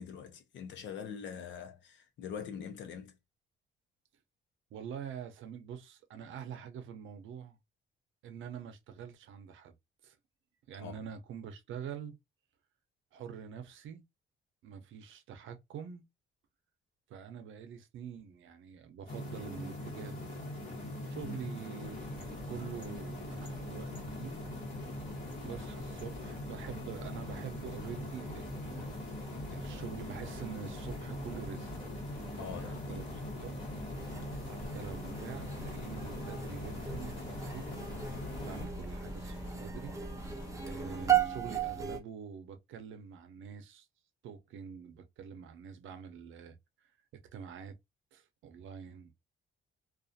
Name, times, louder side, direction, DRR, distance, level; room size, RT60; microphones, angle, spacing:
voice 1, 0.0-3.1 10.8-11.0 21.2-21.4 32.4-33.1, left 7 dB, 70° left, 0.7 m, -44 dB
voice 2, 4.7-7.6 8.2-9.7 10.0-10.2 10.7-12.1 13.1-14.0 14.6-16.0 17.1-20.3 21.1-24.4 25.4-28.9 29.5-31.7 32.2-33.6 34.4-37.7 38.4-40.0 40.6-43.9 44.2-46.6 46.8-46.9 47.3-47.8 48.1-49.1, right 7 dB, 85° right, 0.6 m, -45 dB
sound 1, 19.1-38.7, left 1 dB, 45° left, 1.3 m, -42 dB
sound 2, 21.8-41.1, left 1 dB, 25° left, 1.3 m, -48 dB
sound 3, 33.9-42.0, right 9 dB, 15° right, 0.4 m, -36 dB
2.4 x 2.4 x 2.6 m
cardioid pair, 170°, 20 cm